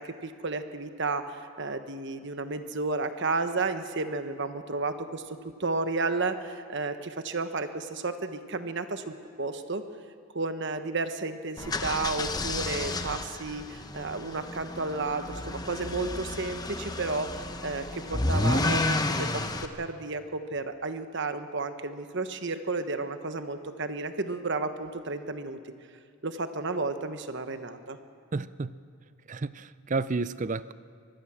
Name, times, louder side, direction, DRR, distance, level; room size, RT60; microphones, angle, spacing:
voice 1, 0.0-9.8 10.3-25.6 26.2-28.0, right 3 dB, 55° right, 1.2 m, -32 dB
sound 1, 11.6-19.7, left 2 dB, 15° left, 0.9 m, -31 dB
voice 2, 28.3-28.7 29.3-30.7, right 3 dB, 35° right, 0.5 m, -31 dB
24.5 x 20.5 x 6.2 m
head